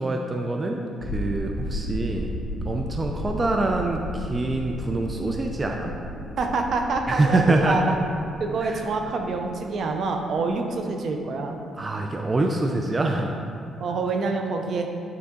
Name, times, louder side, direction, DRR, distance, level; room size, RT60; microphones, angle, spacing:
voice 1, 0.0-2.3 2.6-5.9 7.1-7.9 8.6-8.8 11.7-13.3, right 2 dB, 25° right, 2 dB, 0.5 m, -25 dB
sound 1, 1.0-14.3, equal, 80° left, 1.0 m, -36 dB
voice 2, 6.4-8.0 8.4-11.6 13.8-14.9, right 4 dB, 60° right, 4 dB, 0.7 m, -26 dB
8.6 x 4.0 x 3.8 m, 2.5 s
cardioid pair, 90°, 0 cm